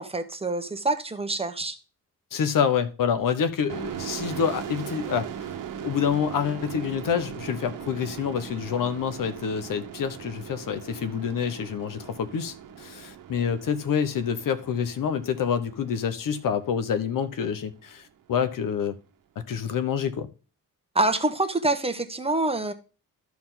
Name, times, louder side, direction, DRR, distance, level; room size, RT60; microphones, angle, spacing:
voice 1, 0.0-1.8 20.9-22.7, right 2 dB, 15° right, 1.0 m, -26 dB
voice 2, 2.3-5.5 5.8-19.0 19.5-20.3, left 7 dB, 75° left, 1.0 m, -27 dB
sound 1, 3.7-17.1, right 9 dB, 70° right, 1.1 m, -39 dB
12.5 x 4.8 x 3.8 m
cardioid pair, 110°, 33 cm